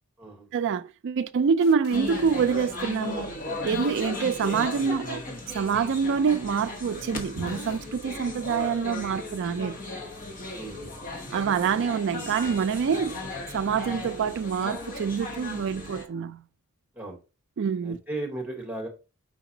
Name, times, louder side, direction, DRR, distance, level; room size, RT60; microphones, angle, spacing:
voice 1, 0.5-3.3 3.6-5.2 5.5-9.8 11.3-13.2 13.5-16.4 17.6-18.0, right 6 dB, 55° right, 0.3 m, -26 dB
sound 1, 1.6-2.2 3.7-4.1 4.4-5.0 7.5-7.8, left 6 dB, 65° left, 0.3 m, -40 dB
sound 2, 1.9-16.0, left 2 dB, 40° left, 0.9 m, -36 dB
voice 2, 17.8-18.9, right 2 dB, 5° right, 1.3 m, -35 dB
5.1 x 3.9 x 2.7 m
head